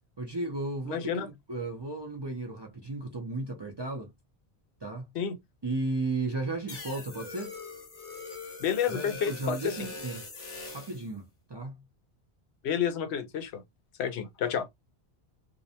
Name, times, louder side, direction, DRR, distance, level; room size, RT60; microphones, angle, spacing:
voice 1, 0.2-4.1 4.8-5.1 5.6-7.5 8.9-10.2 10.7-11.8, right 2 dB, 35° right, 0.4 m, -34 dB
voice 2, 0.9-1.3 5.2-5.4 8.6-9.8 12.6-13.6 14.0-14.7, left 8 dB, 85° left, 0.8 m, -30 dB
sound 1, 6.7-11.1, left 3 dB, 45° left, 0.8 m, -42 dB
2.5 x 2.1 x 2.7 m
omnidirectional pair, 1.1 m